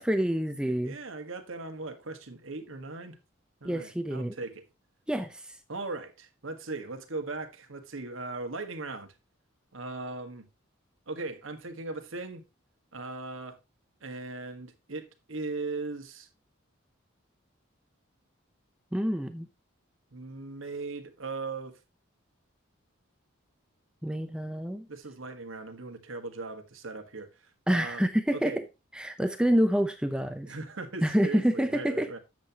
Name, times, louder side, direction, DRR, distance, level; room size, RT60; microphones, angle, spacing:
voice 1, 0.0-1.0 3.6-4.3 5.1-5.5 18.9-19.5 24.0-24.9 27.7-28.6 28.9-30.5 31.0-32.1, equal, 5° right, 0.6 m, -27 dB
voice 2, 0.6-3.2 3.6-4.6 5.7-9.1 9.7-10.5 11.1-12.4 12.9-13.6 14.0-16.3 20.1-21.8 24.9-27.3 27.7-28.0 28.3-28.6 30.5-32.2, right 3 dB, 70° right, 1.5 m, -38 dB
10.5 x 7.5 x 2.9 m
head